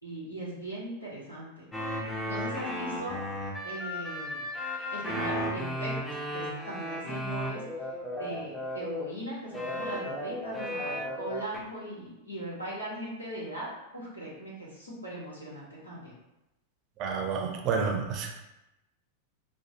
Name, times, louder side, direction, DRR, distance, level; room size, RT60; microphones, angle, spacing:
voice 1, 0.0-1.7 2.3-3.2 3.6-4.4 4.9-7.6 8.2-13.7 13.9-16.1, right 1 dB, 80° left, -6 dB, 1.3 m, -39 dB
sound 1, 1.7-9.0 9.5-11.6, equal, 10° left, 0.7 m, -34 dB
voice 2, 17.0-18.3, right 5 dB, 40° right, 2 dB, 0.6 m, -29 dB
4.4 x 2.3 x 2.9 m, 0.93 s
figure-of-eight pair, 90°, 0 cm